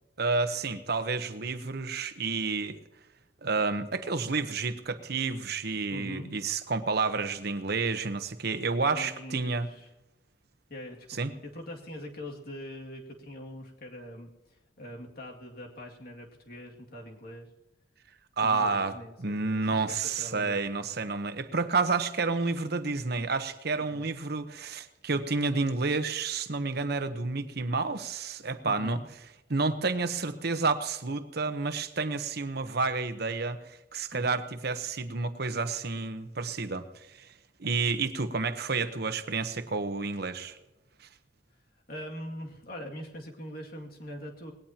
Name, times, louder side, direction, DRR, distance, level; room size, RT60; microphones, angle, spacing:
voice 1, 0.2-2.8 3.4-9.7 11.1-11.3 18.4-29.0 29.5-37.3 37.6-40.6 41.0-41.1, right 4 dB, 60° right, 10 dB, 1.0 m, -30 dB
voice 2, 5.9-6.3 8.9-9.9 10.7-17.5 18.4-19.2 19.4-20.6 23.9-24.1 28.6-29.1 34.1-34.4 41.9-44.5, equal, 55° left, 0 dB, 2.3 m, -43 dB
20.0 x 18.0 x 2.9 m, 0.97 s
head